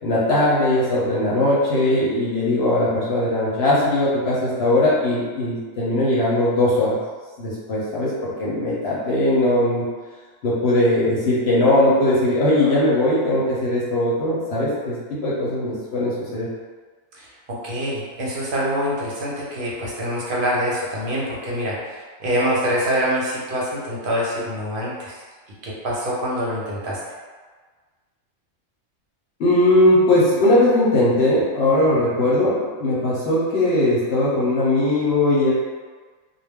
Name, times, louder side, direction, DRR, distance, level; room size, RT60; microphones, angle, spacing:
voice 1, 0.0-7.0 7.4-8.1 8.4-9.8 10.4-15.0 15.2-16.5 29.4-35.5, left 1 dB, 60° left, -7 dB, 0.8 m, -19 dB
voice 2, 17.1-21.8 22.2-25.2 25.6-27.0, equal, 50° right, -5 dB, 0.8 m, -25 dB
2.3 x 2.1 x 3.4 m, 1.5 s
omnidirectional pair, 1.3 m